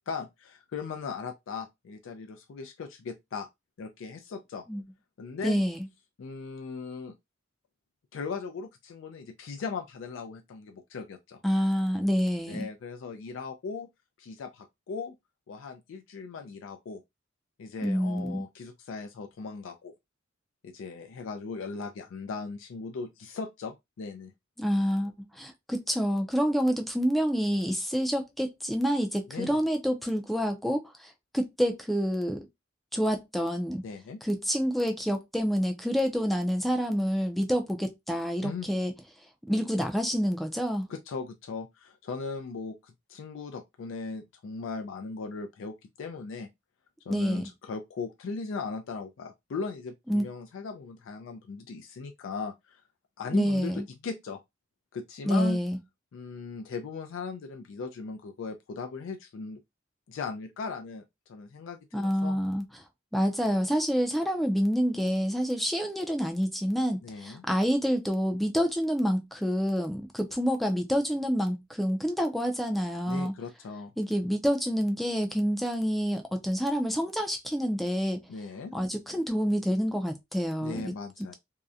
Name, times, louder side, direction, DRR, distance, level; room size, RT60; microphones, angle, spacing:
voice 1, 0.1-3.5 3.8-4.6 5.2-5.6 6.2-7.2 8.1-11.4 12.5-13.9 14.2-15.2 15.5-17.0 17.6-19.9 20.6-24.3 29.3-29.6 33.8-34.2 38.4-38.7 40.9-46.5 47.1-52.8 53.2-54.4 54.9-55.6 56.1-59.6 60.1-61.0 61.3-62.4 67.0-67.4 73.1-73.9 78.3-78.7 80.6-81.3, left 4 dB, 75° left, 0.4 m, -38 dB
voice 2, 5.4-5.8 11.4-12.7 17.8-18.4 24.6-32.5 32.9-33.8 34.2-38.9 39.5-40.9 47.1-47.4 50.1-50.3 53.3-53.9 55.2-55.8 61.9-62.6 63.1-73.3 74.0-78.2 78.7-80.9, equal, ahead, 0.4 m, -28 dB
2.7 x 2.1 x 2.3 m
head